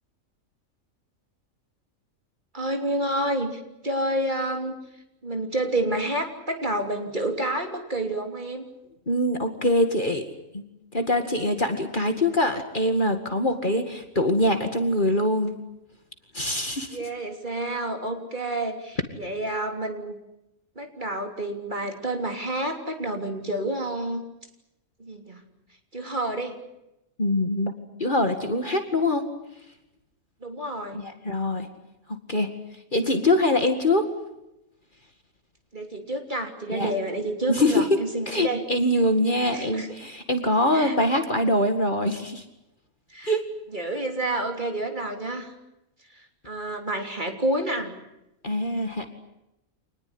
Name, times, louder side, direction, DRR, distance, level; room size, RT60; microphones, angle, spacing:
voice 1, 2.5-4.8 5.2-8.7 16.9-20.2 20.7-24.2 25.0-25.4 25.9-26.5 30.4-31.0 35.7-38.6 39.5-39.9 40.7-41.0 43.1-43.4 43.7-45.5 46.1-47.9, right 1 dB, 35° right, 4 dB, 3.4 m, -29 dB
voice 2, 9.1-10.2 10.5-10.6 10.9-15.5 16.3-17.0 27.2-27.7 28.0-29.3 30.9-31.7 32.3-32.5 32.9-34.1 36.7-36.9 37.5-37.9 38.3-42.4 43.3-43.4 48.4-49.1, left 1 dB, 35° left, 6 dB, 2.3 m, -23 dB
26.5 x 20.0 x 9.8 m, 0.91 s
omnidirectional pair, 1.4 m